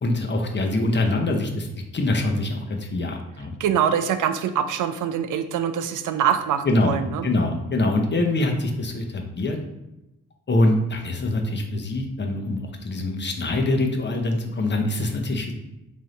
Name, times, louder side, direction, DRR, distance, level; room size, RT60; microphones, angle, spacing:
voice 1, 0.0-1.7 1.9-3.5 6.6-7.0 7.2-9.6 10.5-15.5, left 2 dB, 35° left, 3 dB, 0.7 m, -24 dB
voice 2, 3.6-7.3, right 8 dB, 75° right, 9 dB, 0.5 m, -24 dB
3.3 x 2.7 x 3.8 m, 0.91 s
cardioid pair, 55°, 32 cm